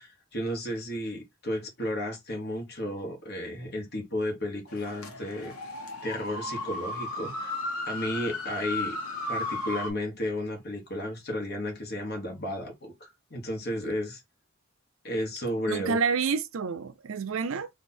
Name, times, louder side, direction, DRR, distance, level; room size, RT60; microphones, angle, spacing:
voice 1, 0.0-5.5 6.0-7.6 7.9-9.0 9.3-14.2 15.0-16.0, left 1 dB, 50° left, 1.5 m, -33 dB
sound 1, 4.7-9.9, left 2 dB, 80° left, 1.1 m, -35 dB
voice 2, 15.7-17.7, right 5 dB, 65° right, 0.5 m, -28 dB
3.3 x 2.6 x 4.2 m
head